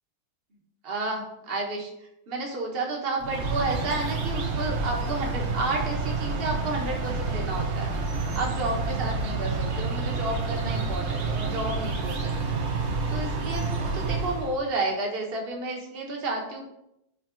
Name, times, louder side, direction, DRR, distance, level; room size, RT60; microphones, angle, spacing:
voice 1, 0.8-1.9 2.3-7.9 8.3-12.6 13.1-16.6, right 2 dB, 35° right, 0 dB, 1.2 m, -31 dB
sound 1, 3.2-14.6, right 4 dB, 70° right, 0.6 m, -29 dB
5.8 x 4.2 x 4.5 m, 0.83 s
omnidirectional pair, 2.2 m